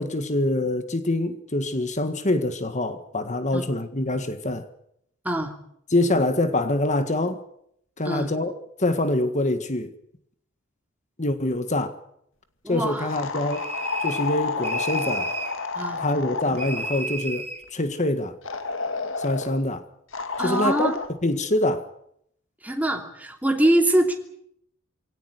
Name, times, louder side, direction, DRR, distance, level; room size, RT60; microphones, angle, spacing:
voice 1, 0.0-4.7 5.9-7.4 8.0-9.9 11.2-12.0 12.7-13.7 14.0-15.3 16.0-18.3 19.2-19.9 20.4-20.9 21.2-21.9, left 1 dB, 35° left, 1.7 m, -25 dB
voice 2, 12.6-13.2 15.7-16.0 20.4-20.9 22.6-24.1, right 1 dB, 10° right, 3.0 m, -23 dB
sound 1, 13.1-17.1 18.4-19.6 20.1-21.1, left 4 dB, 65° left, 2.1 m, -30 dB
sound 2, 13.5-14.3 14.6-15.6 16.6-17.6, right 3 dB, 30° right, 7.5 m, -32 dB
23.0 x 18.0 x 9.6 m
head